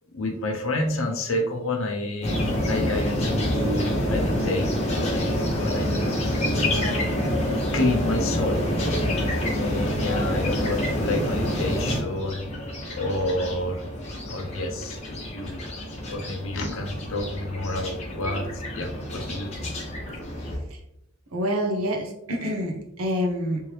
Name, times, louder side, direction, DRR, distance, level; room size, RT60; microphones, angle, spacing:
voice 1, 0.1-5.3 5.6-7.2 7.7-8.7 9.4-12.4 12.9-13.8 14.3-15.7 16.1-19.7, left 1 dB, 70° left, 2 dB, 0.6 m, -29 dB
sound 1, 2.2-20.6, equal, 30° left, 0.9 m, -27 dB
voice 2, 21.3-23.6, equal, 85° right, 2 dB, 0.8 m, -27 dB
3.4 x 3.1 x 3.2 m, 0.77 s
head